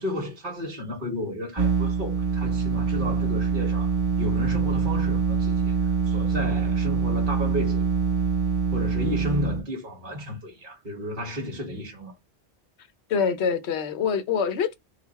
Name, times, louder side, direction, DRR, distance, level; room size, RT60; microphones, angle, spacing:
voice 1, 0.0-3.9 4.2-7.9 8.7-12.1, left 1 dB, 50° right, 1.5 m, -32 dB
sound 1, 1.6-9.6, right 5 dB, 15° right, 1.3 m, -24 dB
voice 2, 13.1-14.7, left 6 dB, 75° left, 1.0 m, -25 dB
4.1 x 2.3 x 4.0 m
omnidirectional pair, 1.1 m